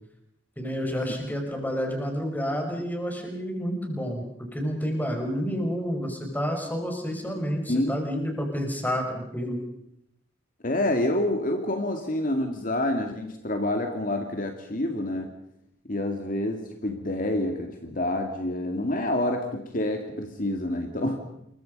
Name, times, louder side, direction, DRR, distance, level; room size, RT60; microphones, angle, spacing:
voice 1, 0.6-9.6, equal, 10° left, 3 dB, 5.5 m, -29 dB
voice 2, 10.6-15.3 15.9-21.2, left 1 dB, 45° left, 4 dB, 2.4 m, -27 dB
29.0 x 22.5 x 5.5 m, 0.78 s
head